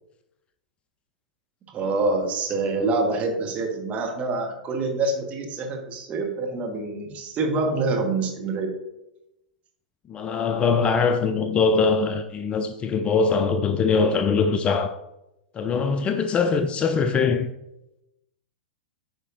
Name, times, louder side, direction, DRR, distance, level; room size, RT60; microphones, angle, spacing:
voice 1, 1.7-8.8, right 3 dB, 30° right, 1.4 m, -26 dB
voice 2, 10.1-15.0 15.5-17.5, left 5 dB, 25° left, 0.4 m, -22 dB
8.8 x 4.9 x 2.6 m
figure-of-eight pair, 100°, 5 cm